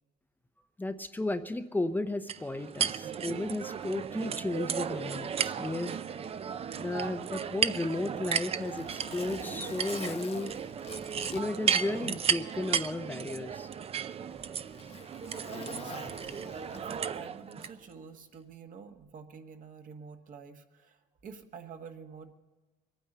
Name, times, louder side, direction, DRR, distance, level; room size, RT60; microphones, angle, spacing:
voice 1, 0.8-6.0 6.8-10.5 11.3-13.7, left 2 dB, 10° left, 8 dB, 0.6 m, -34 dB
sound 1, 2.3-17.7, right 7 dB, 35° right, 0.6 m, -34 dB
Zipper (clothing), 8.0-12.4 12.8-12.9 13.7-17.2 18.3-18.5, left 6 dB, 35° left, 1.0 m, -47 dB
voice 2, 15.6-21.0 21.2-22.3, right 6 dB, 50° right, 5 dB, 1.6 m, -48 dB
22.5 x 9.2 x 6.7 m, 1.2 s
cardioid pair, 110°, 17 cm